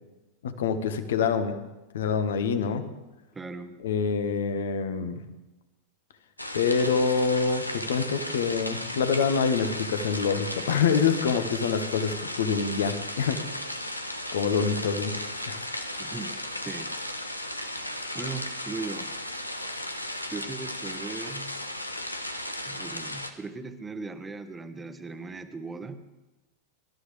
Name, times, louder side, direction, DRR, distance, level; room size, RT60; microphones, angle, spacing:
voice 1, 0.4-1.6 1.9-2.8 3.8-5.2 6.5-13.4 14.3-15.1 15.5-15.6, left 6 dB, 60° left, 10 dB, 1.4 m, -26 dB
voice 2, 3.3-3.7 16.0-16.4 16.6-16.9 18.1-19.2 20.3-21.6 22.6-26.0, right 3 dB, 15° right, 9 dB, 1.3 m, -38 dB
sound 1, 6.4-23.3, left 1 dB, 85° left, 1.2 m, -35 dB
26.0 x 13.0 x 3.4 m, 1.0 s
figure-of-eight pair, 90°, 0 cm